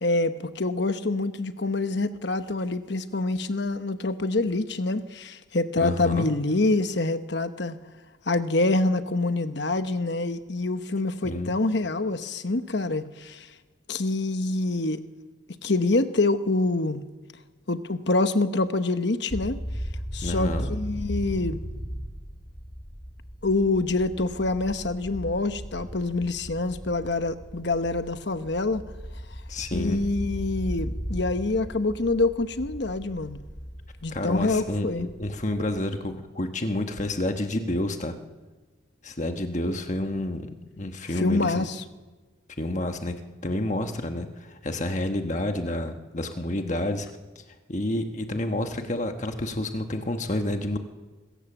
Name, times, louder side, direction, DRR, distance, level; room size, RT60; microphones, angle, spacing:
voice 1, 0.0-7.8 8.3-13.5 13.9-15.0 15.6-17.0 17.7-19.6 20.1-21.6 23.4-28.8 29.7-33.4 34.0-35.1 41.1-41.8, left 2 dB, 60° left, 10 dB, 1.0 m, -26 dB
voice 2, 5.8-6.3 11.2-11.5 20.2-20.7 29.5-30.0 34.1-38.1 39.0-40.5 40.8-41.7 42.6-47.1 47.3-47.4 47.7-50.8, left 1 dB, 35° left, 6 dB, 1.3 m, -29 dB
sound 1, 19.3-36.1, equal, 20° left, 1.7 m, -37 dB
25.0 x 15.5 x 7.3 m, 1.3 s
head